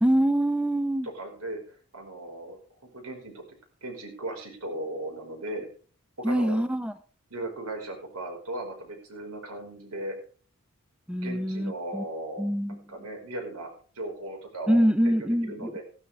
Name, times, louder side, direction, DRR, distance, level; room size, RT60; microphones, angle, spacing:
voice 1, 0.0-1.1 6.2-6.9 11.1-12.0 12.4-12.8 14.7-15.7, equal, 5° right, 10 dB, 0.6 m, -24 dB
voice 2, 1.0-3.4 3.8-5.7 6.2-6.6 7.3-10.2 11.1-13.7 14.0-15.8, right 1 dB, 85° right, 2 dB, 5.2 m, -37 dB
15.5 x 12.5 x 3.6 m, 0.40 s
head